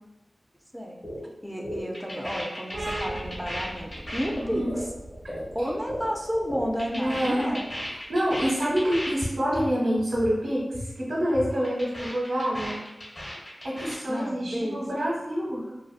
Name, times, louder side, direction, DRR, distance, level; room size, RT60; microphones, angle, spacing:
sound 1, 1.0-1.2 1.5-6.1 6.3-9.3 9.5-9.7 10.0-10.3 10.6-10.9 11.2-14.0, equal, 50° left, 0.9 m, -35 dB
voice 1, 1.4-4.8 5.5-7.7 14.1-14.8, equal, ahead, 0 dB, 0.3 m, -31 dB
sound 2, 2.7-10.0, right 1 dB, 70° right, 0.4 m, -41 dB
voice 2, 6.9-7.6 7.8-12.8 13.6-15.7, equal, 90° right, -5 dB, 0.8 m, -27 dB
2.5 x 2.5 x 2.4 m, 0.99 s
wide cardioid pair, 65°, 0 cm